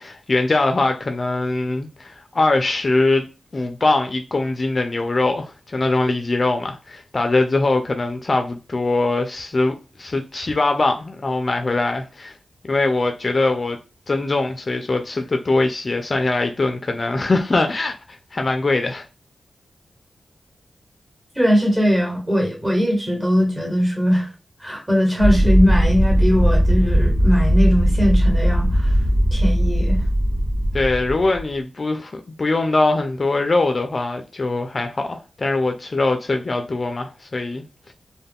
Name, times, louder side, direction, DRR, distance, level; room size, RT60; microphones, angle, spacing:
voice 1, 0.0-3.3 3.5-12.4 12.7-13.8 14.1-19.0 30.7-37.9, left 2 dB, 40° left, 0.3 m, -22 dB
voice 2, 21.3-24.3 24.6-28.9 29.3-30.0, equal, 20° right, 1.1 m, -20 dB
sound 1, 25.2-31.4, equal, 60° right, 1.3 m, -18 dB
2.2 x 2.1 x 3.5 m
wide cardioid pair, 95°, 0 cm